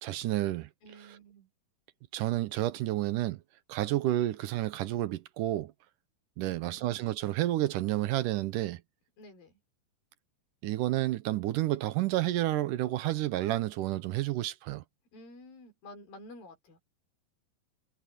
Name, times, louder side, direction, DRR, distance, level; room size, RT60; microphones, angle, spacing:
voice 1, 0.0-0.7 2.1-3.4 3.7-5.7 6.4-8.8 10.6-14.8, right 15 dB, 75° right, 2.2 m, -30 dB
voice 2, 0.8-1.5 6.4-7.0 9.2-9.6 15.1-16.8, left 1 dB, 90° left, 6.6 m, -51 dB
omnidirectional pair, 4.0 m